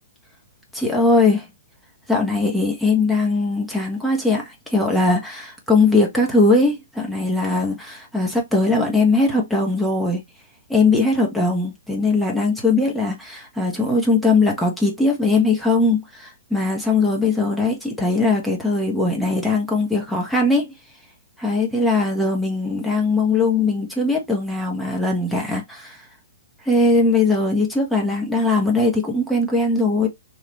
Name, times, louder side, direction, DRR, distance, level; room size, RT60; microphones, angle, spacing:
voice 1, 0.7-1.4 2.1-10.2 10.7-20.7 21.4-26.0 26.6-30.1, left 3 dB, ahead, 0.9 m, -20 dB
3.2 x 2.5 x 3.0 m
figure-of-eight pair, 115°, 0 cm